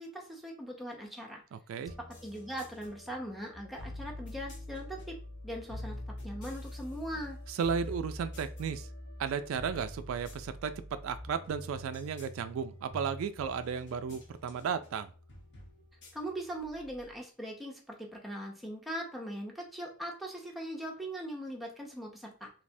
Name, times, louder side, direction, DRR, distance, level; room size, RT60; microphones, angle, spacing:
voice 1, 0.0-1.4 2.0-5.2 5.4-6.0 6.2-7.4 16.1-22.5, equal, ahead, -1 dB, 0.6 m, -40 dB
sound 1, 1.9-17.1, left 1 dB, 60° left, 1.0 m, -46 dB
voice 2, 7.5-8.9 9.2-15.1, right 6 dB, 80° right, 11 dB, 0.3 m, -34 dB
3.3 x 2.8 x 2.6 m, 0.40 s
head